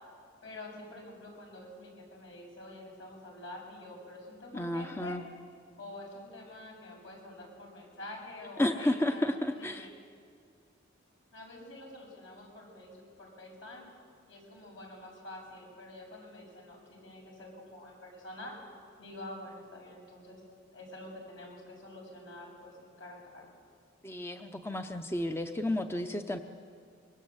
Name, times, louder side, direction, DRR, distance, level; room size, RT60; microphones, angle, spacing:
voice 1, 0.4-5.2 5.8-9.9 11.3-13.9 14.3-18.5 19.0-20.4 20.7-23.5, left 1 dB, 75° left, -1 dB, 7.5 m, -47 dB
voice 2, 4.5-5.2 8.6-9.9 24.0-26.4, left 1 dB, 15° left, 6 dB, 0.7 m, -32 dB
25.0 x 23.0 x 8.0 m, 2.2 s
head